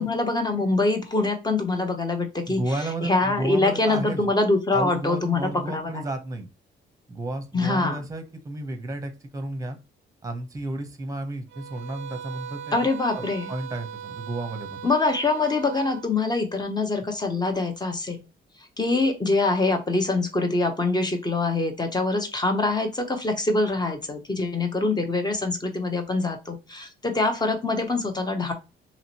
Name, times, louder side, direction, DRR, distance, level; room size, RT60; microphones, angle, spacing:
voice 1, 0.0-2.6 3.0-6.0 7.5-8.0 12.7-13.5 14.8-18.2 18.8-28.5, left 3 dB, 20° left, 5 dB, 0.8 m, -24 dB
voice 2, 2.5-4.2 4.7-6.5 7.1-9.8 10.2-12.9 13.1-14.8, right 2 dB, 15° right, 6 dB, 0.8 m, -32 dB
sound 1, 11.5-16.1, right 9 dB, 65° right, 0.5 m, -39 dB
3.0 x 2.8 x 2.8 m, 0.29 s
cardioid pair, 90°, 20 cm